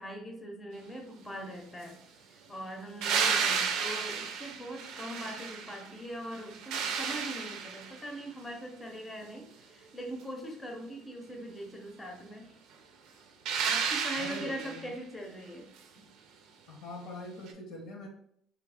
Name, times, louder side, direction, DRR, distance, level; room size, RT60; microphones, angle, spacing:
voice 1, 0.0-12.6 13.6-15.7 16.0-16.1, equal, 15° left, 2 dB, 0.7 m, -41 dB
sound 1, 3.0-5.9 6.3-8.1 13.4-14.9 17.5-17.6, right 6 dB, 75° right, 0.5 m, -32 dB
voice 2, 14.2-15.0 16.7-18.1, left 2 dB, 75° left, 1 dB, 0.9 m, -43 dB
3.0 x 2.5 x 3.4 m, 0.69 s
cardioid pair, 105°, 0 cm